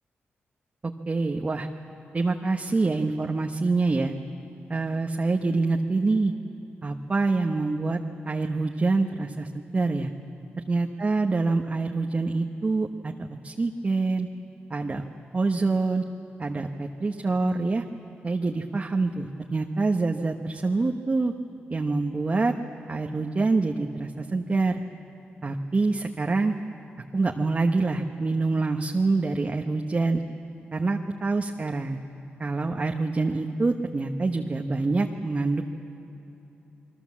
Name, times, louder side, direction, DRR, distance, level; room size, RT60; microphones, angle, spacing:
voice 1, 0.8-1.7 2.1-4.1 4.7-6.3 6.8-8.0 8.2-10.1 10.7-14.3 14.7-15.1 15.3-16.0 16.4-17.8 18.2-21.3 21.7-22.5 22.9-24.8 25.4-26.5 27.1-30.2 30.7-32.0 32.4-35.6, right 3 dB, 35° right, 3 dB, 1.1 m, -26 dB
29.5 x 21.5 x 7.4 m, 3.0 s
cardioid pair, 85°, 4 cm